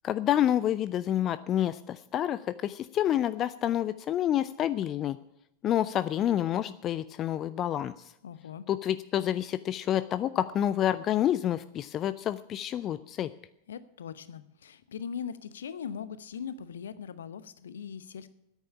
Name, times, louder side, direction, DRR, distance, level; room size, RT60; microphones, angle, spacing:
voice 1, 0.0-5.2 5.6-7.9 8.7-13.3, left 11 dB, 30° left, 14 dB, 0.4 m, -28 dB
voice 2, 8.2-8.7 13.7-18.3, left 7 dB, 65° left, 15 dB, 0.8 m, -40 dB
10.5 x 9.2 x 9.8 m, 0.80 s
figure-of-eight pair, 90°, 0 cm